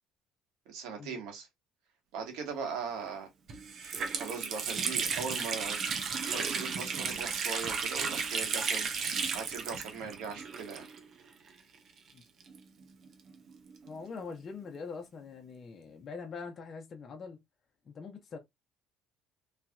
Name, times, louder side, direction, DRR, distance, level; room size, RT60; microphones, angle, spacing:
voice 1, 0.7-1.5 2.1-3.3 4.1-10.8, right 5 dB, 85° right, 1.4 m, -40 dB
Water tap faucet, 3.0-3.1 3.5-11.2 11.5-11.6 12.4-14.0, right 5 dB, 50° right, 0.8 m, -34 dB
voice 2, 13.9-17.4 17.9-18.4, left 5 dB, 40° left, 0.9 m, -43 dB
3.2 x 2.8 x 2.3 m
cardioid pair, 120°, 0 cm